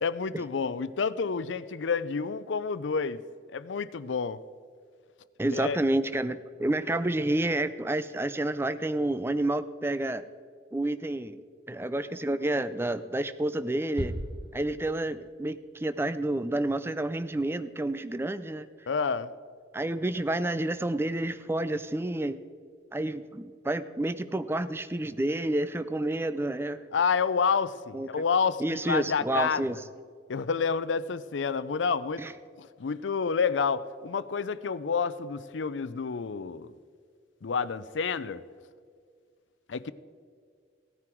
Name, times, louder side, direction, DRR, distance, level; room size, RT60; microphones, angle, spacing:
voice 1, 0.0-3.2 3.5-4.4 5.5-5.8 18.9-19.3 26.9-29.6 30.3-32.2 32.6-36.7 37.4-38.4 39.7-39.9, left 5 dB, 80° left, 16 dB, 0.5 m, -29 dB
voice 2, 5.4-10.2 10.7-11.4 11.7-14.1 14.5-18.7 19.7-22.4 22.9-26.8 27.9-28.2 28.6-29.8 32.2-32.3, right 1 dB, 15° right, 13 dB, 0.4 m, -29 dB
sound 1, 14.0-15.4, right 1 dB, 30° right, 0.9 m, -37 dB
16.5 x 9.7 x 4.5 m, 2.1 s
head